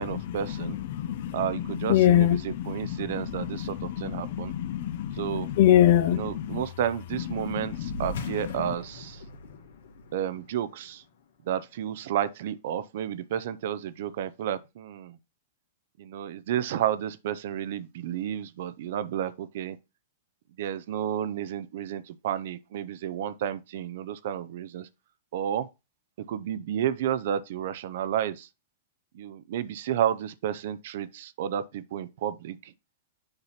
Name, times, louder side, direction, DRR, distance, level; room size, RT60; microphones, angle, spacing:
voice 1, 0.0-0.8 1.3-4.5 5.1-5.5 6.1-9.2 10.1-11.0 11.4-15.2 16.0-19.8 20.6-24.9 25.3-25.7 26.3-28.5 29.1-32.7, right 10 dB, 65° right, 0.5 m, -31 dB
voice 2, 0.9-1.3 1.9-2.6 3.2-3.5 4.1-6.6, left 11 dB, 55° left, 0.6 m, -23 dB
sound 1, 7.8-12.7, left 1 dB, 75° left, 1.2 m, -43 dB
6.7 x 2.9 x 5.6 m
hypercardioid pair, 135°, 0 cm